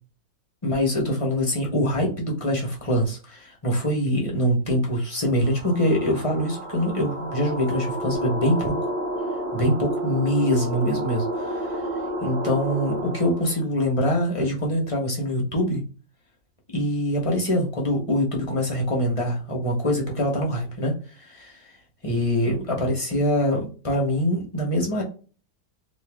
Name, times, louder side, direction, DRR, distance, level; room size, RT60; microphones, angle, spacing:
voice 1, 0.6-8.9 9.5-11.8 12.2-15.8 16.7-21.7 22.0-25.0, equal, 30° left, -1 dB, 0.7 m, -24 dB
sound 1, 5.2-13.6, right 1 dB, 85° right, 1.5 m, -30 dB
3.2 x 2.7 x 3.3 m, 0.37 s
omnidirectional pair, 2.0 m